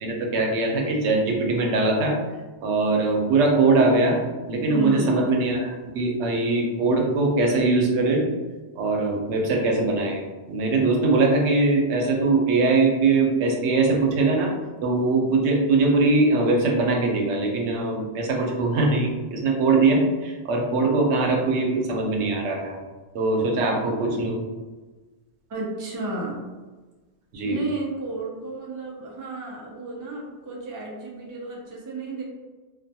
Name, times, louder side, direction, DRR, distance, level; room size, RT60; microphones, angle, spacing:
voice 1, 0.0-2.2 2.6-4.2 4.5-8.2 8.8-14.5 14.8-22.8 23.1-24.4 27.3-27.6, right 3 dB, 90° right, 0 dB, 0.9 m, -21 dB
voice 2, 4.7-5.2 25.5-26.5 27.4-32.2, right 2 dB, 35° right, -3 dB, 0.3 m, -32 dB
2.4 x 2.2 x 2.7 m, 1.3 s
omnidirectional pair, 1.1 m